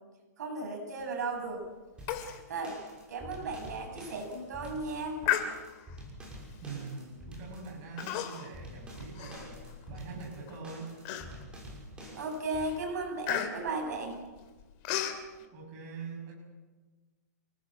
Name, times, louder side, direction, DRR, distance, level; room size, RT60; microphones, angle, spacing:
voice 1, 0.4-1.6 2.5-2.8 3.1-5.2 12.1-14.2, right 3 dB, 70° right, 3 dB, 7.8 m, -35 dB
sound 1, 2.0-12.7, equal, 10° right, 6.5 m, -47 dB
Human voice, 2.1-2.4 2.7-2.8 3.3-3.4 4.0-4.3 5.2-6.0 6.7-6.9 8.0-8.6 9.0-10.0 10.5-10.6 11.1-11.6 12.1-12.3 12.6-15.2, left 11 dB, 35° left, 2.8 m, -34 dB
voice 2, 6.6-9.5 9.9-10.9 15.5-16.3, right 4 dB, 30° right, 0 dB, 6.7 m, -43 dB
28.5 x 18.5 x 7.5 m, 1.3 s
hypercardioid pair, 165°, 9 cm